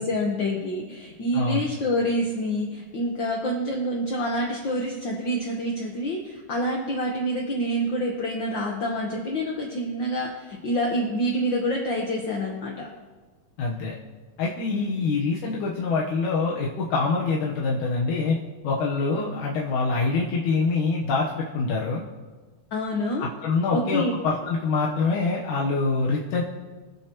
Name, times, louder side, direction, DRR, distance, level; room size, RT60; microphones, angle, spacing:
voice 1, 0.0-12.9 14.7-15.1 22.7-23.2 23.7-24.1, equal, 55° left, -1 dB, 1.3 m, -27 dB
voice 2, 13.6-13.9 14.4-18.4 18.6-22.0 23.2-26.4, left 4 dB, 80° left, -3 dB, 2.5 m, -25 dB
25.0 x 8.4 x 3.0 m, 1.3 s
omnidirectional pair, 3.6 m